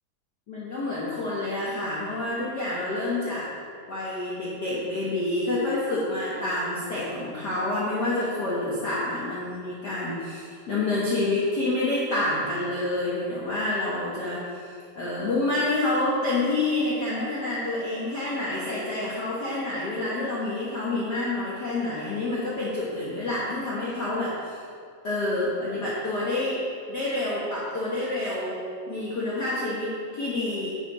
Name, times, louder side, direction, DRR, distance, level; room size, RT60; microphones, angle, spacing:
voice 1, 0.5-3.5 3.9-24.6 25.0-26.6 26.9-28.6 28.9-30.7, left 2 dB, 80° left, -7 dB, 0.9 m, -28 dB
9.9 x 5.9 x 4.2 m, 2.3 s
omnidirectional pair, 3.9 m